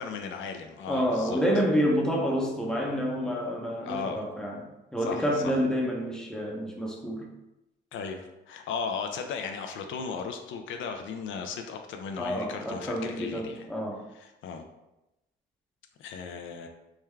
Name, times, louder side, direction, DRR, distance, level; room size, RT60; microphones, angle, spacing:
voice 1, 0.0-1.4 3.8-4.2 5.0-5.6 7.9-13.7 14.1-14.6 16.0-16.7, left 5 dB, 75° left, 5 dB, 0.4 m, -36 dB
voice 2, 0.9-4.6 4.9-7.3 12.2-14.0, equal, 5° left, -1 dB, 0.7 m, -28 dB
3.5 x 2.2 x 3.2 m, 0.94 s
cardioid pair, 90°, 20 cm